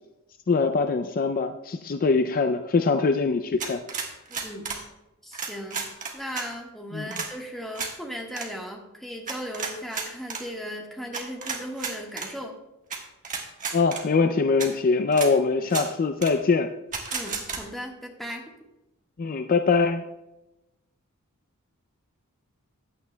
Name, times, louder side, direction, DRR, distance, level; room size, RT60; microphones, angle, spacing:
voice 1, 0.5-3.8 6.9-7.1 13.7-16.7 19.2-20.0, left 4 dB, 40° left, 8 dB, 0.4 m, -23 dB
sound 1, 3.6-4.8 5.3-6.5 7.1-7.3 7.7-7.9 8.3-8.5 9.3-10.4 11.1-12.3 12.9-13.0 13.2-14.0 14.6-14.7 15.1-15.3 15.7-15.9 16.2-16.3 16.9-17.6, right 5 dB, 35° right, 1.4 m, -32 dB
voice 2, 4.3-4.7 5.2-5.8 6.1-12.5 17.1-18.4, equal, ahead, -1 dB, 1.5 m, -37 dB
15.0 x 9.4 x 2.2 m, 0.94 s
head